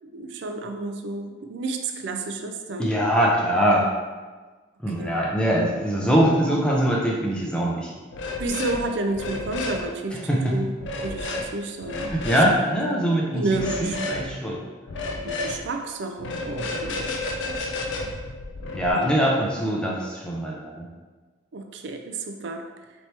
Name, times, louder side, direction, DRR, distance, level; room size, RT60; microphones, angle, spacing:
voice 1, 0.0-2.9 5.0-5.1 8.4-10.2 10.5-10.7 11.0-12.1 12.5-12.6 13.3-14.0 15.2-17.2 18.9-19.1 21.5-22.6, right 2 dB, 60° right, 5 dB, 0.4 m, -31 dB
voice 2, 2.8-3.9 4.8-7.9 10.1-10.6 12.1-13.5 13.8-14.6 18.7-20.9, equal, 5° left, -3 dB, 0.6 m, -22 dB
sound 1, 8.1-8.8 9.1-9.8 10.8-11.5 11.8-12.5 13.5-14.2 14.9-15.6 16.2-18.9, left 2 dB, 60° left, 0.5 m, -31 dB
4.2 x 2.9 x 3.3 m, 1.3 s
head